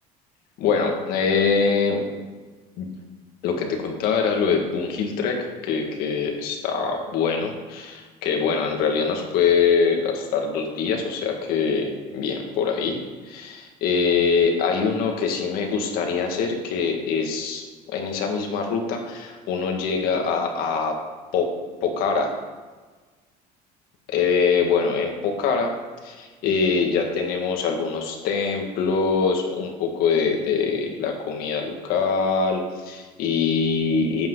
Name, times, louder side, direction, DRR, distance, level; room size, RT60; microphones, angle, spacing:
voice 1, 0.6-2.1 2.8-2.9 3.4-13.0 13.2-21.0 21.3-21.5 21.8-22.4 24.1-25.7 26.0-34.3, left 5 dB, 65° left, 2 dB, 2.1 m, -23 dB
13.5 x 8.9 x 4.1 m, 1.3 s
cardioid pair, 160°, 17 cm